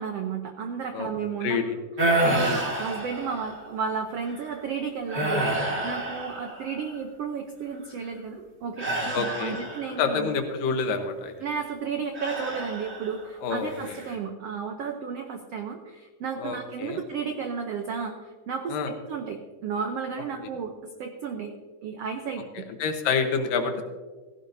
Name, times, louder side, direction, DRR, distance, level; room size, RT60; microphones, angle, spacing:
voice 1, 0.0-1.6 2.1-10.4 11.4-21.5 21.8-22.6, right 6 dB, 85° right, 5 dB, 1.3 m, -33 dB
sound 1, 2.0-3.7 4.2-4.5 5.1-7.0 8.8-10.1 12.1-13.3 13.7-14.1, right 1 dB, 25° right, 1.7 m, -28 dB
voice 2, 9.1-9.6 10.0-11.3 13.4-14.0 16.4-17.0 18.7-18.9 22.6-23.8, left 5 dB, 80° left, 6 dB, 2.8 m, -28 dB
16.5 x 15.5 x 2.7 m, 1.3 s
omnidirectional pair, 3.9 m